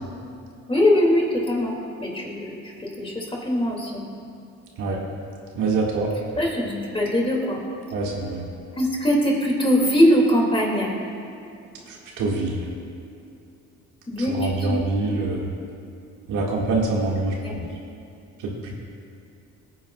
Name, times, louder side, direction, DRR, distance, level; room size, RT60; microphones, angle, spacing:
voice 1, 0.7-4.0 6.4-7.6 8.7-10.9 14.1-14.8 17.4-17.6, equal, 20° left, -2 dB, 2.6 m, -22 dB
voice 2, 5.5-6.1 7.9-8.5 11.9-12.6 14.2-15.5 16.3-17.6 18.4-18.8, right 3 dB, 90° right, -3 dB, 2.1 m, -25 dB
20.0 x 9.3 x 2.4 m, 2.6 s
cardioid pair, 90°, 30 cm